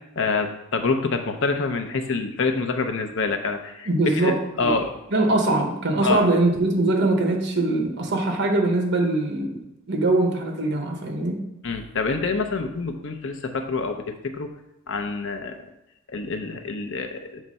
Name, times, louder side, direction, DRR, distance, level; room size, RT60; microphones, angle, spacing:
voice 1, 0.2-4.9 6.0-6.3 11.6-14.5 14.9-15.6 16.1-17.4, left 4 dB, 65° left, 6 dB, 0.7 m, -26 dB
voice 2, 3.9-4.8 5.1-9.6 9.9-11.4, right 2 dB, 55° right, 2 dB, 1.2 m, -22 dB
7.3 x 3.3 x 5.3 m, 0.87 s
head